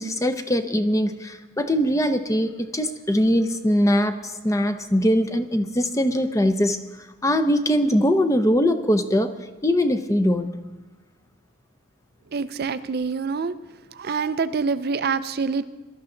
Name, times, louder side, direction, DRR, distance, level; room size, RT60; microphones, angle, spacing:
voice 1, 0.0-6.8 7.2-9.3 9.6-10.5, equal, 15° left, 9 dB, 0.6 m, -21 dB
voice 2, 12.3-13.5 13.9-15.6, right 5 dB, 45° right, 13 dB, 0.4 m, -26 dB
21.5 x 12.5 x 3.8 m, 1.2 s
head